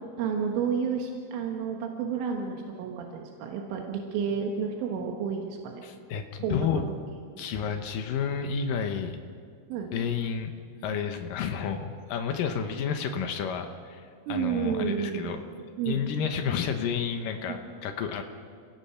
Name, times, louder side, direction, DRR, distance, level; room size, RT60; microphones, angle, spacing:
voice 1, 0.2-5.8 6.4-7.0 7.3-7.4 9.7-9.9 14.3-15.3 15.8-16.0 17.5-17.6, right 6 dB, 90° right, 1 dB, 4.1 m, -31 dB
voice 2, 5.8-6.8 7.4-9.2 9.9-10.5 10.8-14.0 14.3-15.4 15.9-18.2, left 7 dB, 75° left, 5 dB, 2.0 m, -30 dB
29.0 x 18.0 x 5.8 m, 2.2 s
omnidirectional pair, 5.5 m